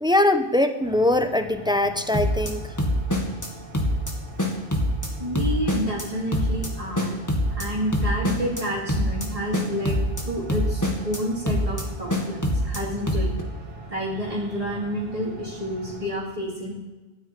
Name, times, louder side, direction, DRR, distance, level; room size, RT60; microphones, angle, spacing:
voice 1, 0.0-2.6, left 1 dB, 5° right, 8 dB, 0.8 m, -21 dB
Metallic ambience, 0.8-16.1, right 2 dB, 70° right, 2.4 m, -42 dB
sound 1, 2.1-2.5 2.8-3.5 3.7-4.1 4.4-5.1 5.4-6.0 6.3-6.7 7.0-7.7 7.9-8.6 8.9-9.3 9.5-10.2 10.5-11.2 11.5-11.8 12.1-12.8 13.1-13.4, left 1 dB, 15° left, 2.1 m, -24 dB
voice 2, 5.2-7.2 7.5-10.0 10.3-13.3 13.9-16.7, equal, 30° right, -5 dB, 2.6 m, -29 dB
14.5 x 9.7 x 8.5 m, 1.1 s
omnidirectional pair, 1.2 m